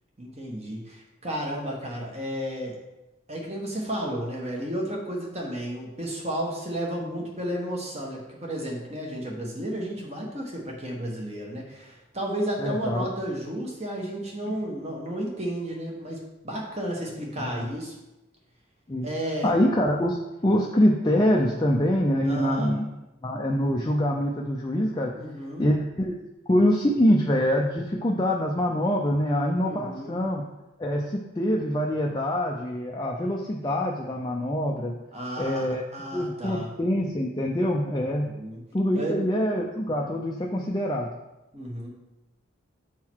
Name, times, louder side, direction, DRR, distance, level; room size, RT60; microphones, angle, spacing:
voice 1, 0.2-2.8 3.3-17.9 19.0-19.5 22.2-22.7 25.1-25.7 29.6-30.2 35.1-35.7 35.9-36.7 38.0-38.6 38.9-39.2 41.5-41.9, right 1 dB, 30° right, -1 dB, 1.3 m, -32 dB
voice 2, 12.6-13.1 14.5-14.6 17.4-17.7 18.9-19.1 19.4-20.2 20.4-22.8 23.2-25.1 25.6-26.2 26.5-30.4 30.8-35.0 35.4-35.8 36.1-38.3 38.7-41.1, equal, 20° left, 0 dB, 0.5 m, -25 dB
7.2 x 3.8 x 4.5 m, 0.98 s
head